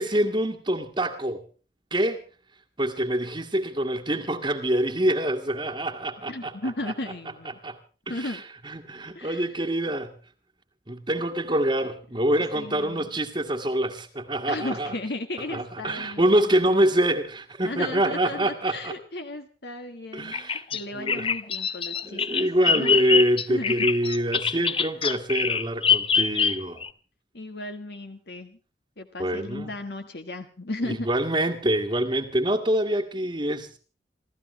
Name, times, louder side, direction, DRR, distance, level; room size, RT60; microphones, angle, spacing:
voice 1, 0.0-1.4 1.9-2.2 2.8-6.7 7.6-7.8 8.1-10.1 10.9-14.9 15.5-18.9 20.1-20.6 20.9-21.3 22.0-26.8 29.2-29.7 30.9-33.8, right 1 dB, 25° right, 1.6 m, -25 dB
voice 2, 6.3-7.6 8.1-8.4 9.1-9.5 12.5-13.1 14.5-16.5 17.6-23.0 23.5-23.9 27.3-28.6 29.0-31.1, left 2 dB, 70° left, 1.5 m, -35 dB
Bird vocalization bird call bird song, 20.3-26.9, left 6 dB, 30° left, 0.8 m, -24 dB
27.5 x 14.5 x 3.1 m
head